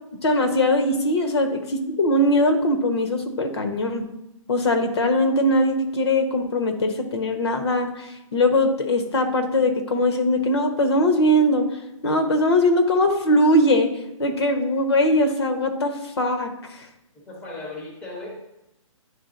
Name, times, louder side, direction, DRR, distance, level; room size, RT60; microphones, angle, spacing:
voice 1, 0.2-4.1 4.5-11.7 12.0-13.9 14.2-16.5, left 1 dB, 50° left, 6 dB, 0.9 m, -21 dB
voice 2, 17.1-18.3, left 2 dB, 5° left, -3 dB, 0.8 m, -36 dB
10.5 x 3.6 x 2.5 m, 0.87 s
hypercardioid pair, 175°, 17 cm